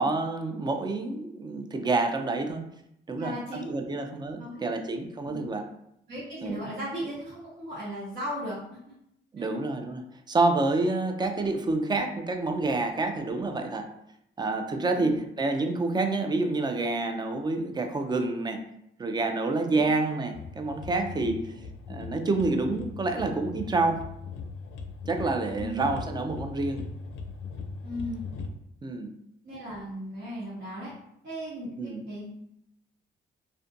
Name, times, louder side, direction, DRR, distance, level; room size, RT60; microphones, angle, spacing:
voice 1, 0.0-2.6 3.1-3.3 3.7-5.7 6.4-6.6 9.3-13.9 14.4-18.6 19.0-21.5 21.9-24.1 25.1-26.9 28.8-29.1 31.8-32.0, right 3 dB, 20° right, 5 dB, 0.4 m, -28 dB
voice 2, 3.1-4.1 4.4-4.7 5.3-5.5 6.1-8.6 9.4-9.5 14.9-15.2 19.7-19.9 21.1-21.4 25.6-26.0 27.8-28.2 29.4-30.9 31.2-32.3, equal, 55° right, -10 dB, 1.1 m, -37 dB
sound 1, 20.3-28.5, left 4 dB, 75° left, 0.4 m, -40 dB
2.5 x 2.2 x 2.5 m, 0.76 s
cardioid pair, 90°, 20 cm